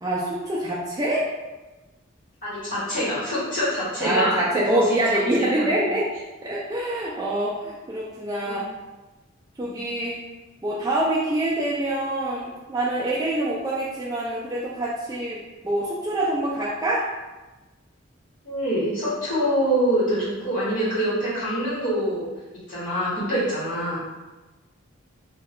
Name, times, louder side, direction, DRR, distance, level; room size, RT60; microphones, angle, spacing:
voice 1, 0.0-1.2 4.0-6.1 6.4-8.6 9.6-10.2 10.6-17.1, right 1 dB, 20° right, -6 dB, 0.3 m, -25 dB
voice 2, 2.4-5.0 5.4-5.7 8.4-8.7 9.6-9.8 18.4-22.3 22.7-24.0, equal, 40° left, -10 dB, 1.2 m, -25 dB
2.3 x 2.3 x 3.5 m, 1.1 s
head